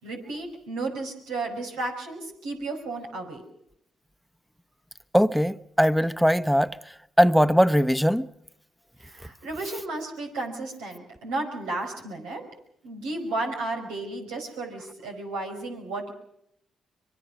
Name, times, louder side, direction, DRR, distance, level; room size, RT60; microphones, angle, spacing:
voice 1, 0.0-3.4 9.0-12.4 12.8-16.1, right 2 dB, 85° right, 5.2 m, -33 dB
voice 2, 5.1-6.8 7.2-8.3, equal, ahead, 1.1 m, -20 dB
25.0 x 22.5 x 6.3 m
supercardioid pair, 55°, 0 cm